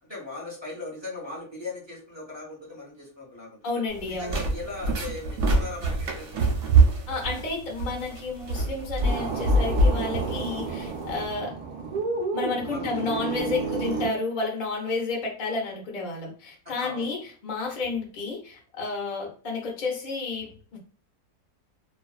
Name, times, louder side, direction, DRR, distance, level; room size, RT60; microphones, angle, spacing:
voice 1, 0.0-3.6 4.0-6.4 12.7-12.9 16.8-17.1, left 3 dB, 20° right, -6 dB, 0.8 m, -38 dB
voice 2, 3.6-4.4 7.1-11.5 12.3-20.8, left 3 dB, 50° left, -2 dB, 0.5 m, -31 dB
sound 1, 3.9-11.3, right 2 dB, 65° right, 0.8 m, -25 dB
sound 2, 9.0-14.1, right 4 dB, 85° right, 0.4 m, -31 dB
2.4 x 2.3 x 2.3 m, 0.41 s
omnidirectional pair, 1.7 m